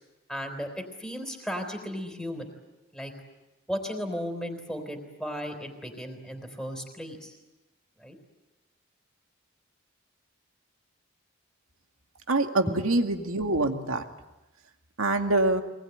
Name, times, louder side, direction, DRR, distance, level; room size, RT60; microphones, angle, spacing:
voice 1, 0.3-0.7 1.0-2.5 2.9-3.1 3.7-7.3 8.0-8.1 12.7-12.8, equal, ahead, 4 dB, 3.8 m, -35 dB
voice 2, 12.3-14.0 15.0-15.6, right 2 dB, 80° right, 5 dB, 2.2 m, -25 dB
23.5 x 20.5 x 9.4 m, 1.0 s
head